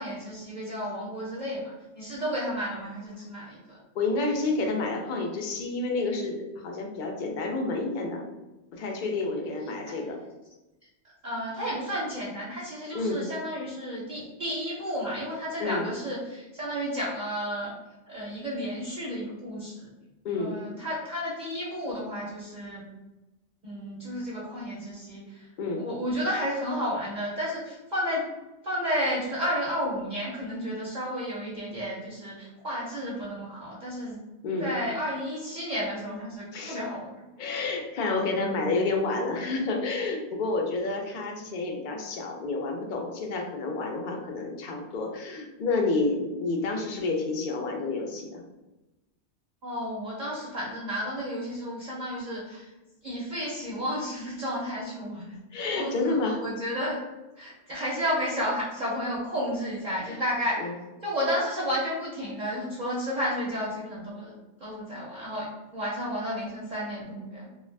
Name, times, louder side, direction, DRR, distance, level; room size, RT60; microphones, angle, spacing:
voice 1, 0.0-3.8 9.9-10.0 11.2-17.7 18.1-19.9 20.4-22.9 23.6-25.5 25.8-28.3 28.6-34.2 34.6-37.1 38.4-38.6 49.6-52.7 53.0-57.0 57.4-60.7 61.0-64.3 64.6-65.5 65.7-67.5, equal, 50° right, -6 dB, 0.6 m, -32 dB
voice 2, 4.0-8.2 8.7-10.2 12.9-13.2 15.6-15.9 20.2-20.6 25.6-25.8 34.4-34.7 36.5-36.8 37.4-48.4 55.5-56.4 60.1-60.2 60.6-60.7, left 3 dB, 60° left, 1 dB, 0.5 m, -29 dB
2.4 x 2.3 x 3.2 m, 1.0 s
omnidirectional pair, 1.2 m